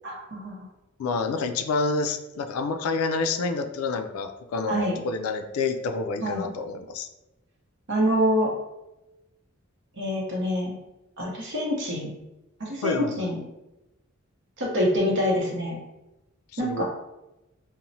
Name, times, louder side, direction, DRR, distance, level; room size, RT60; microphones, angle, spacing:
voice 1, 0.0-0.6 4.7-4.9 6.2-6.5 7.9-8.5 10.0-10.7 11.2-12.1 12.6-13.4 14.6-15.8 16.6-16.8, equal, 60° right, -1 dB, 0.7 m, -26 dB
voice 2, 1.0-7.1 12.8-13.3 16.5-16.8, left 4 dB, 75° left, 6 dB, 0.3 m, -28 dB
2.9 x 2.0 x 2.6 m, 0.98 s
head